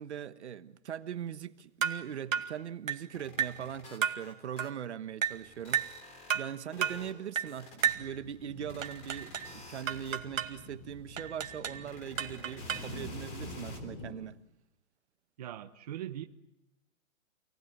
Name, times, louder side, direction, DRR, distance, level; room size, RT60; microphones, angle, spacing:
voice 1, 0.0-6.1 6.3-14.4, right 9 dB, 55° right, 1.4 m, -41 dB
sound 1, 1.8-2.0 2.3-2.5 2.9-3.1 3.4-3.6 4.0-4.2 4.6-4.8 5.2-5.4 5.7-6.0 6.3-6.5 6.8-7.0 7.4-7.5 7.8-8.1 8.8-9.5 9.9-10.6 11.2-11.8 12.2-13.0, right 8 dB, 70° right, 2.3 m, -32 dB
sound 2, 3.1-4.7 5.0-6.4 6.7-7.1 7.5-8.4 8.7-10.2 11.2-11.3 11.8-13.8, left 3 dB, 15° left, 3.6 m, -51 dB
sound 3, 7.8-14.1, left 1 dB, 35° left, 5.5 m, -47 dB
voice 2, 15.4-16.2, right 11 dB, 30° right, 1.0 m, -40 dB
28.0 x 19.5 x 9.4 m
hypercardioid pair, 170°, 40 cm